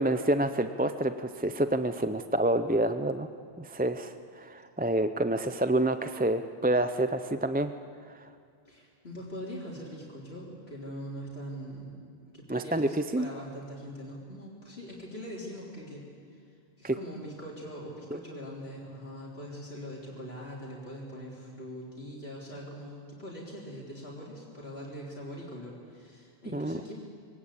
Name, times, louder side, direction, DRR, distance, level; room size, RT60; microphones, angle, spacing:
voice 1, 0.0-3.3 3.6-7.7 8.1-8.3 12.5-13.3 16.8-17.0 18.1-18.2 26.5-26.8, right 1 dB, 15° right, 10 dB, 0.4 m, -28 dB
voice 2, 8.7-16.1 16.3-16.4 16.8-26.9, equal, 70° left, -4 dB, 3.6 m, -42 dB
23.5 x 18.0 x 8.4 m, 2.3 s
omnidirectional pair, 1.1 m